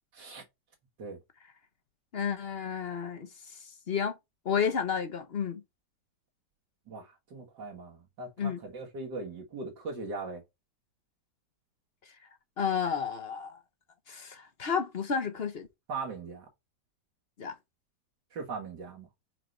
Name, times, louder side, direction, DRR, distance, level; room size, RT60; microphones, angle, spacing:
voice 1, 0.1-0.4 1.0-1.2 6.9-10.4 15.9-16.5 18.3-19.1, right 3 dB, 75° right, 2.0 m, -39 dB
voice 2, 2.1-3.6 3.9-4.2 4.4-5.6 8.4-8.6 12.6-13.6 14.1-15.7 17.4-17.6, left 7 dB, 45° left, 0.9 m, -31 dB
4.5 x 4.4 x 5.1 m
omnidirectional pair, 1.8 m